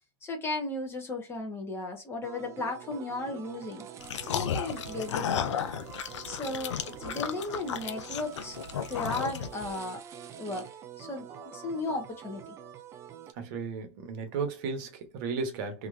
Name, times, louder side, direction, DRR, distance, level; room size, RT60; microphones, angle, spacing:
voice 1, 0.2-3.9 4.3-5.5 6.2-10.0 10.4-10.7 11.0-11.3 11.5-12.5, left 2 dB, 15° left, 1.1 m, -35 dB
sound 1, 2.2-13.3, right 9 dB, 20° right, 0.4 m, -46 dB
sound 2, 4.0-9.7, left 8 dB, 75° left, 0.6 m, -34 dB
voice 2, 13.4-15.9, right 4 dB, 45° right, 1.1 m, -34 dB
3.0 x 2.9 x 2.5 m
hypercardioid pair, 135°, 15 cm